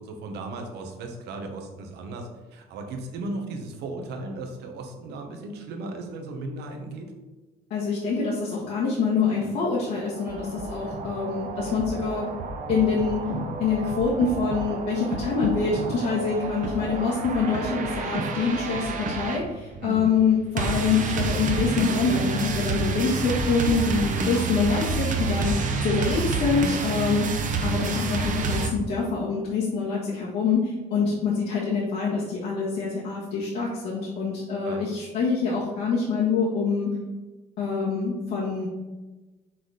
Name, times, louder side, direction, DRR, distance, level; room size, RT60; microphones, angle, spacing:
voice 1, 0.0-7.1 19.8-20.1 27.7-27.9 34.6-34.8, right 2 dB, 80° right, 3 dB, 1.3 m, -36 dB
voice 2, 7.7-12.3 12.7-13.3 13.6-36.9 37.6-38.7, left 5 dB, 75° left, -7 dB, 1.7 m, -25 dB
sound 1, 9.9-28.7, right 4 dB, 50° right, 0.9 m, -29 dB
6.1 x 4.2 x 4.9 m, 1.2 s
cardioid pair, 110°, 17 cm